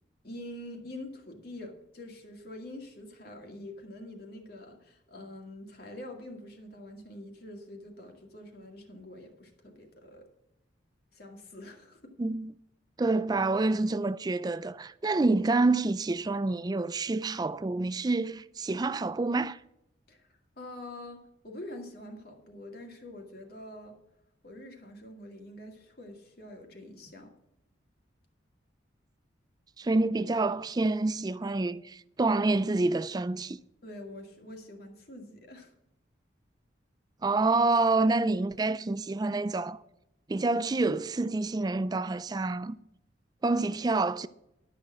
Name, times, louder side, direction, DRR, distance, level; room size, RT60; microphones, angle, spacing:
voice 1, 0.2-10.3 11.1-12.1 20.1-20.3 20.6-24.0 24.4-27.3 33.8-35.7, left 1 dB, 50° left, 2.0 m, -45 dB
voice 2, 12.2-12.5 13.0-19.6 29.8-33.6 37.2-39.8 40.3-42.8 43.4-44.3, right 3 dB, 20° right, 0.3 m, -27 dB
12.0 x 6.5 x 6.1 m
head